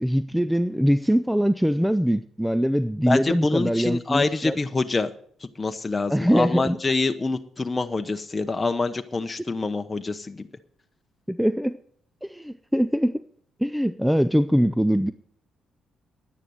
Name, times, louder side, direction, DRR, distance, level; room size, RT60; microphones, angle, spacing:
voice 1, 0.0-4.6 6.1-6.8 11.3-11.8 12.2-13.2 13.6-15.1, equal, ahead, 0.5 m, -22 dB
voice 2, 3.1-5.1 5.6-10.5, left 3 dB, 25° left, 0.9 m, -26 dB
11.0 x 9.8 x 7.9 m
cardioid pair, 90°, 0 cm